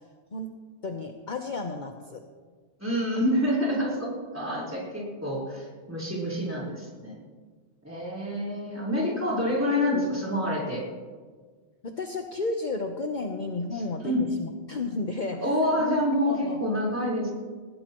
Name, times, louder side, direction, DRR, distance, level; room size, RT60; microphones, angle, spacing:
voice 1, 0.8-2.2 11.8-15.4 16.2-16.6, left 3 dB, 45° left, 4 dB, 1.0 m, -32 dB
voice 2, 2.8-7.2 7.8-10.8 14.0-14.2 15.4-17.3, left 1 dB, 15° right, -4 dB, 4.4 m, -27 dB
20.5 x 16.0 x 3.1 m, 1.5 s
omnidirectional pair, 1.2 m